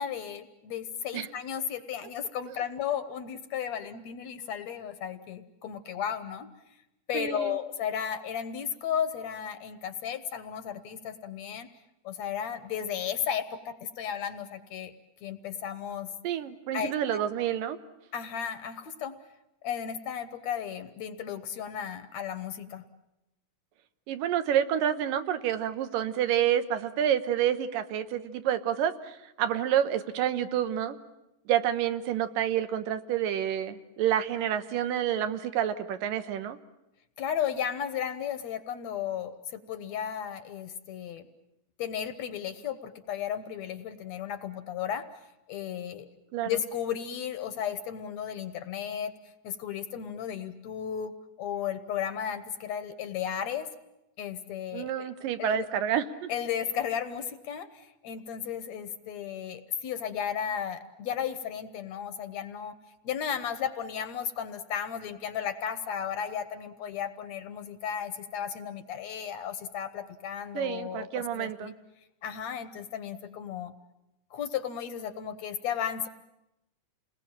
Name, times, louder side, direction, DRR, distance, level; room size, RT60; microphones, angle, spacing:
voice 1, 0.0-6.5 7.1-11.7 12.0-14.9 15.2-16.1 16.7-17.2 18.1-19.2 19.6-22.8 37.2-41.3 41.8-45.1 45.5-46.1 46.4-49.1 49.4-53.7 54.2-55.1 55.4-55.7 56.3-62.8 63.0-71.7 72.2-73.7 74.3-76.1, left 8 dB, 65° left, 11 dB, 2.1 m, -34 dB
voice 2, 7.1-7.6 16.2-17.8 24.1-31.0 31.5-36.6 46.3-46.6 54.7-56.3 70.5-71.8, right 10 dB, 90° right, 10 dB, 2.8 m, -28 dB
29.0 x 20.0 x 8.9 m, 0.91 s
omnidirectional pair, 3.8 m